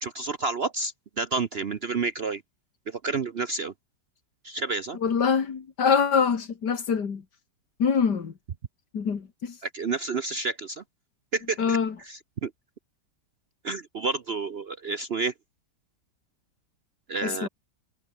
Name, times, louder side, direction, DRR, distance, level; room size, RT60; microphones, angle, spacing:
voice 1, 0.0-2.4 2.9-3.7 4.4-5.0 9.6-10.8 11.3-12.5 13.6-15.3 17.1-17.5, right 4 dB, 50° right, 0.8 m, -30 dB
voice 2, 5.0-7.2 7.8-8.3 8.9-9.6 11.6-11.9 17.2-17.5, left 6 dB, 70° left, 2.6 m, -24 dB
omnidirectional pair, 1.8 m